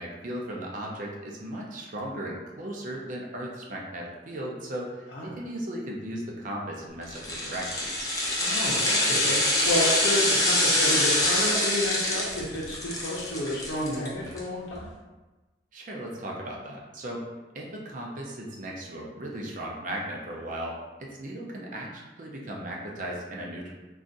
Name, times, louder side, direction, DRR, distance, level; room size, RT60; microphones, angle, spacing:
voice 1, 0.0-8.1 15.7-17.2 17.5-23.7, right 1 dB, 45° right, -2 dB, 0.5 m, -36 dB
sound 1, 7.1-14.4 14.7-14.8, left 1 dB, 20° left, 0.5 m, -25 dB
voice 2, 8.4-14.9, left 1 dB, 75° left, -6 dB, 0.6 m, -30 dB
2.5 x 2.3 x 3.8 m, 1.2 s
head